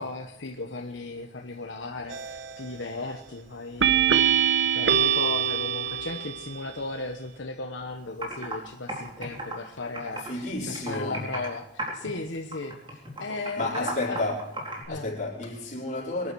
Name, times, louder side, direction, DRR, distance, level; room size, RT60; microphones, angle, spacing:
voice 1, 0.0-14.2 14.9-15.1, left 3 dB, 75° left, 1.2 m, -36 dB
sound 1, 2.1-2.6 3.8-6.6, right 8 dB, 70° right, 1.0 m, -24 dB
Computer keyboard, 7.8-7.9 8.2-8.5 8.9-10.4 10.7-11.5 11.8-12.2 12.5-14.8, right 1 dB, 25° right, 4.0 m, -35 dB
voice 2, 10.1-11.2 13.6-14.5 14.9-16.3, left 2 dB, 40° left, 5.0 m, -31 dB
23.5 x 11.0 x 4.8 m
head